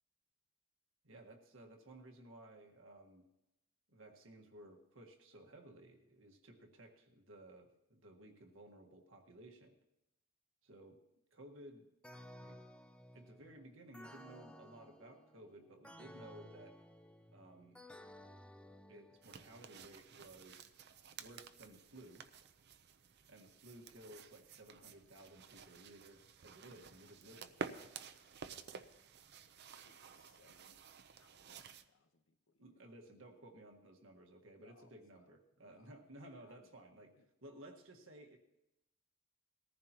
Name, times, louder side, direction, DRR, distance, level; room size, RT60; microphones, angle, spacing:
voice 1, 1.0-3.3 3.9-9.8 10.6-11.0 11.3-11.9 12.4-12.6 13.1-16.8 17.3-17.8 18.9-20.7 21.2-22.2 23.3-27.8 32.6-37.1 37.4-38.4, right 1 dB, 85° right, 3 dB, 1.6 m, -57 dB
sound 1, 12.0-19.7, equal, 5° left, 0.5 m, -57 dB
sound 2, 19.2-31.8, right 5 dB, 55° right, 0.6 m, -52 dB
voice 2, 29.8-30.8 31.2-32.8 34.6-35.3 35.6-36.8 37.2-37.3, left 3 dB, 80° left, 7 dB, 1.1 m, -70 dB
20.5 x 14.5 x 3.0 m, 0.91 s
head